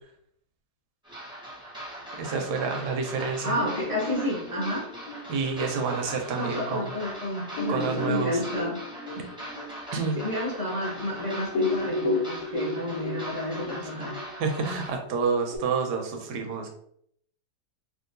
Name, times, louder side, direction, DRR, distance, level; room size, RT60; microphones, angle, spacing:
sound 1, 1.0-14.9, right 1 dB, 5° right, 0.8 m, -41 dB
voice 1, 2.1-3.5 5.3-6.9 7.7-8.4 9.9-10.2 14.4-16.7, right 5 dB, 85° right, 3 dB, 1.2 m, -28 dB
voice 2, 3.4-4.8 6.3-8.8 9.1-9.2 9.9-14.2, left 1 dB, 40° left, -6 dB, 0.5 m, -31 dB
sound 2, 3.5-6.6 7.1-7.2 7.5-11.1 11.4-15.6, left 2 dB, 70° left, 1.0 m, -33 dB
3.6 x 2.4 x 2.5 m, 0.67 s
omnidirectional pair, 1.8 m